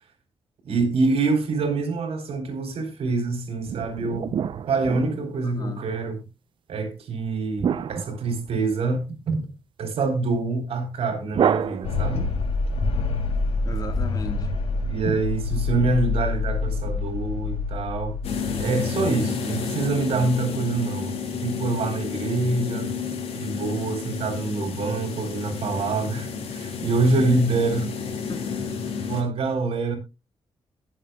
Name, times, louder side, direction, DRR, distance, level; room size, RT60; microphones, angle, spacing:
voice 1, 0.6-4.4 4.7-6.2 6.7-9.5 9.8-12.3 14.9-18.2 18.6-22.9 23.3-27.9 29.1-30.0, right 3 dB, 75° right, 3.8 m, -25 dB
sound 1, 3.7-5.7 7.6-9.0 11.3-12.4, right 8 dB, 55° right, 0.5 m, -28 dB
voice 2, 5.4-5.8 13.7-14.5 28.3-28.8, left 4 dB, 40° left, 1.9 m, -36 dB
sound 2, 11.8-18.7, left 3 dB, 75° left, 2.8 m, -26 dB
sound 3, 18.2-29.2, left 6 dB, 90° left, 3.1 m, -31 dB
21.0 x 7.5 x 2.3 m
wide cardioid pair, 155°, 10 cm